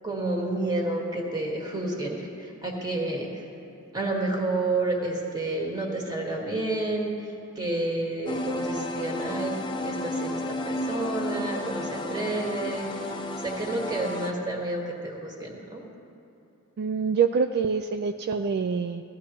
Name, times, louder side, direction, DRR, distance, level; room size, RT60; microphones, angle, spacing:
voice 1, 0.0-3.4 3.9-9.6 9.8-15.8, right 2 dB, 20° right, -1 dB, 1.7 m, -30 dB
sound 1, 8.3-14.3, left 1 dB, 20° left, 0.6 m, -32 dB
voice 2, 16.8-19.0, right 5 dB, 50° right, 7 dB, 0.3 m, -25 dB
17.0 x 12.5 x 3.0 m, 2.8 s
head